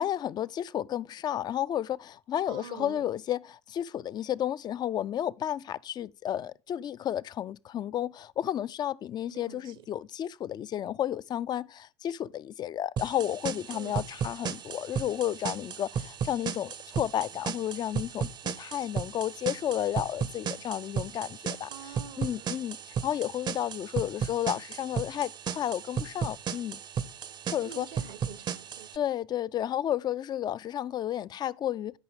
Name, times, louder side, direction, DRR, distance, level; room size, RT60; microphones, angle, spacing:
voice 1, 0.0-26.8 27.5-27.9 28.9-32.0, left 11 dB, 30° left, 0.4 m, -32 dB
voice 2, 2.5-3.1 9.3-9.9 13.7-13.9 21.7-22.6 27.6-28.9, right 8 dB, 60° right, 0.8 m, -46 dB
sound 1, 13.0-29.0, right 7 dB, 30° right, 0.6 m, -35 dB
12.5 x 5.6 x 3.6 m
figure-of-eight pair, 70°, 14 cm